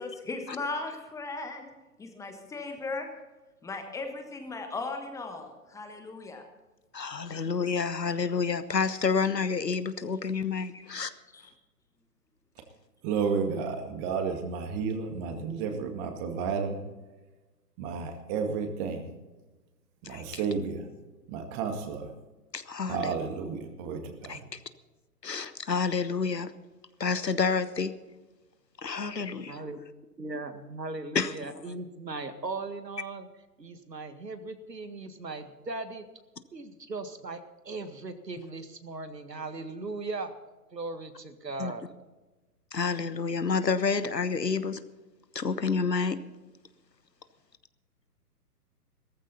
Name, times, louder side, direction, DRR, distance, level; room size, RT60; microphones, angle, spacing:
voice 1, 0.0-1.7 2.0-3.1 3.6-6.4 7.3-7.4 10.7-10.8 11.3-11.4, left 3 dB, 5° left, 5 dB, 1.3 m, -37 dB
voice 2, 6.9-11.1 20.0-20.2 22.5-23.1 24.3-24.6 25.2-26.5 27.0-27.9 28.8-29.6 31.1-31.3 41.6-41.7 42.7-44.8 45.3-46.2, left 5 dB, 85° left, 13 dB, 1.3 m, -29 dB
voice 3, 13.0-16.8 17.8-19.0 20.0-20.9 21.3-22.1 22.9-24.5, right 5 dB, 25° right, 5 dB, 2.1 m, -32 dB
voice 4, 29.5-29.8 30.2-33.3 33.6-36.1 36.5-40.3 40.7-41.9, right 3 dB, 85° right, 10 dB, 1.9 m, -38 dB
16.5 x 14.5 x 4.2 m, 1.2 s
figure-of-eight pair, 125°, 48 cm